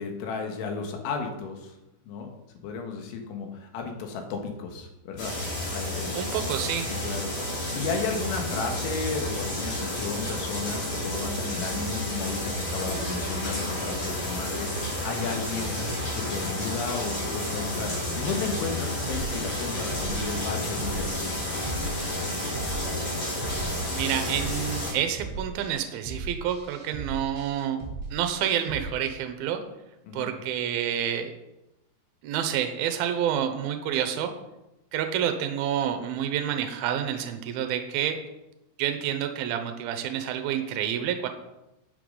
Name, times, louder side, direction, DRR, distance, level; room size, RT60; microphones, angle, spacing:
voice 1, 0.0-1.8 2.1-2.3 2.6-6.1 7.0-21.5 30.0-30.3, left 4 dB, 85° left, 3 dB, 3.9 m, -34 dB
sound 1, 5.2-24.9, left 1 dB, 40° left, 4.9 m, -31 dB
voice 2, 6.2-6.9 23.9-27.8 28.1-29.6 30.1-31.3 32.2-34.3 34.9-38.2 38.8-41.3, right 9 dB, 80° right, 7 dB, 2.2 m, -28 dB
sound 2, 19.0-28.9, right 4 dB, 30° right, 1.0 m, -38 dB
12.5 x 8.6 x 3.9 m, 0.94 s
omnidirectional pair, 5.3 m